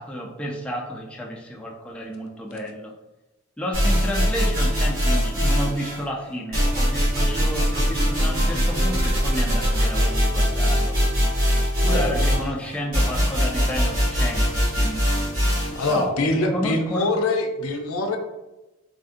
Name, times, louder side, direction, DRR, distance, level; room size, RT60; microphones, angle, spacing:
voice 1, 0.0-2.9 3.6-11.0 11.8-15.0 15.7-17.1, equal, 5° left, -3 dB, 0.4 m, -31 dB
sound 1, 3.7-6.0 6.5-16.0, equal, 75° right, 1.5 m, -22 dB
voice 2, 11.9-12.4 15.7-18.2, left 2 dB, 75° left, 4 dB, 0.5 m, -24 dB
3.5 x 2.4 x 2.5 m, 1.0 s
head